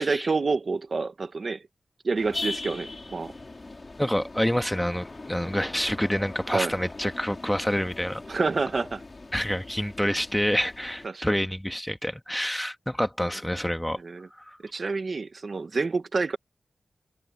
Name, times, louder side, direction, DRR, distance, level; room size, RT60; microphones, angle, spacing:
voice 1, 0.0-1.6 2.0-3.3 6.5-6.8 8.3-9.0 11.0-11.4 14.0-14.3 14.7-16.4, right 4 dB, 55° right, 1.4 m, -28 dB
sound 1, 2.2-11.1, left 2 dB, 40° left, 3.9 m, -40 dB
voice 2, 4.0-8.2 9.3-14.0, equal, 5° left, 1.6 m, -27 dB
open air
wide cardioid pair, 70°, 0 cm